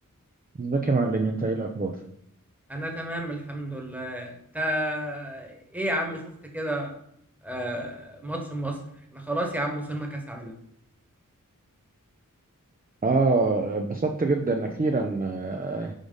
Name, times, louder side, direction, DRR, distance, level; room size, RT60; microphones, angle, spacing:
voice 1, 0.6-2.0 13.0-15.9, right 3 dB, 25° right, 3 dB, 0.6 m, -25 dB
voice 2, 2.7-6.2 6.5-6.9 7.4-8.8 9.1-10.5, right 1 dB, 5° right, 1 dB, 1.3 m, -31 dB
5.2 x 4.9 x 3.9 m, 0.73 s
wide cardioid pair, 50°, 33 cm